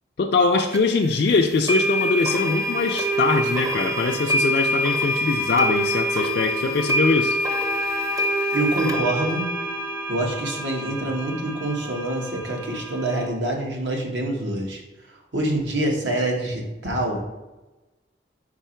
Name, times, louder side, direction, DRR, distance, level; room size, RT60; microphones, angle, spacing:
voice 1, 0.2-7.4, left 4 dB, 60° left, 2 dB, 0.3 m, -22 dB
sound 1, 0.7-0.8 1.7-13.3, equal, 20° right, 0.5 m, -25 dB
voice 2, 8.2-9.5 10.1-14.8 15.1-17.3, right 1 dB, 90° right, 0 dB, 1.3 m, -26 dB
4.9 x 4.6 x 4.4 m, 1.1 s
head